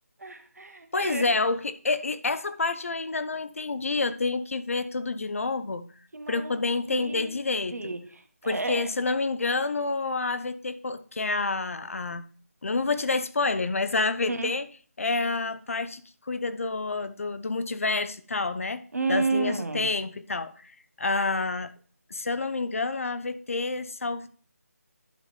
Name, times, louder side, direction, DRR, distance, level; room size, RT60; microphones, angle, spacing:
voice 1, 0.2-1.2 6.1-6.5 6.9-7.3 7.7-8.9 14.3-14.5 18.9-19.9, right 3 dB, 75° right, 8 dB, 1.3 m, -31 dB
voice 2, 0.9-5.8 6.3-7.9 8.5-12.2 12.6-14.7 15.0-16.0 16.3-18.8 19.1-20.7 21.0-21.7 22.1-24.3, left 3 dB, 60° left, 12 dB, 0.7 m, -28 dB
11.0 x 4.1 x 3.3 m, 0.41 s
figure-of-eight pair, 170°, 9 cm